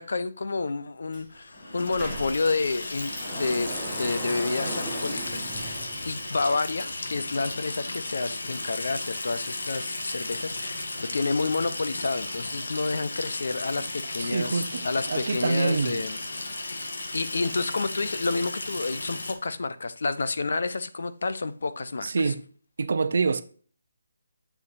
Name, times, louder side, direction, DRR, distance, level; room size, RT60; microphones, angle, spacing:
voice 1, 0.0-22.3, left 3 dB, 60° left, 0.7 m, -30 dB
Sliding door, 1.1-1.2 1.5-6.5, right 1 dB, 5° left, 1.4 m, -38 dB
Water tap faucet / Sink (filling or washing), 1.4-19.3, left 2 dB, 80° left, 1.6 m, -35 dB
voice 2, 14.2-16.0 22.0-22.4 22.8-23.4, right 4 dB, 50° right, 0.6 m, -26 dB
7.2 x 6.8 x 2.6 m
hypercardioid pair, 175°, 0 cm